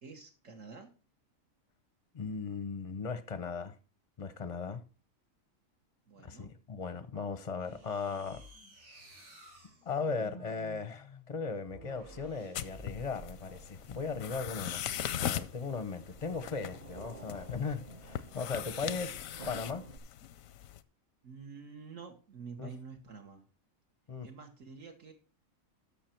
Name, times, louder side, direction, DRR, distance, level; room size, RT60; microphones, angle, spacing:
voice 1, 0.0-0.9 6.1-6.5 21.2-23.4 24.2-25.1, right 5 dB, 70° right, 1.6 m, -48 dB
voice 2, 2.1-3.7 4.2-4.8 6.2-8.4 9.9-14.8 15.2-19.8 22.6-22.7 24.1-24.3, left 5 dB, 35° left, 0.6 m, -37 dB
sound 1, 7.6-13.6 14.4-15.1, equal, 85° right, 3.5 m, -53 dB
sound 2, 12.5-20.8, left 10 dB, 85° left, 1.1 m, -40 dB
sound 3, 13.2-20.0, right 3 dB, 35° right, 0.7 m, -52 dB
13.5 x 5.9 x 4.4 m
omnidirectional pair, 1.4 m